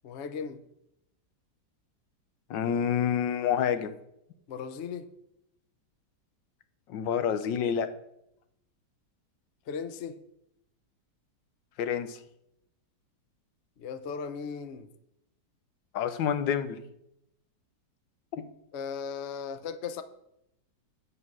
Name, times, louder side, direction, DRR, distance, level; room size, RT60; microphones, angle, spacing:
voice 1, 0.0-0.6 4.5-5.1 9.7-10.2 13.8-14.9 18.7-20.0, left 6 dB, 55° left, 11 dB, 0.8 m, -37 dB
voice 2, 2.5-3.9 6.9-7.9 11.8-12.2 15.9-16.8 18.4-18.5, left 8 dB, 90° left, 11 dB, 1.5 m, -28 dB
8.5 x 7.5 x 6.1 m, 0.81 s
omnidirectional pair, 1.9 m